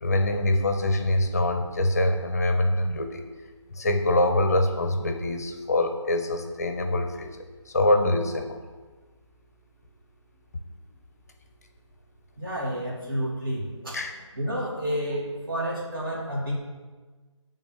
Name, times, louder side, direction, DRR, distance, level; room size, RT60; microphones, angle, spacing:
voice 1, 0.0-3.2 3.7-7.3 7.7-8.6 13.9-14.1, left 1 dB, 30° left, 5 dB, 0.7 m, -24 dB
voice 2, 12.4-14.0 14.4-16.6, equal, 45° right, -3 dB, 2.6 m, -30 dB
10.5 x 3.8 x 6.4 m, 1.3 s
figure-of-eight pair, 160°, 16 cm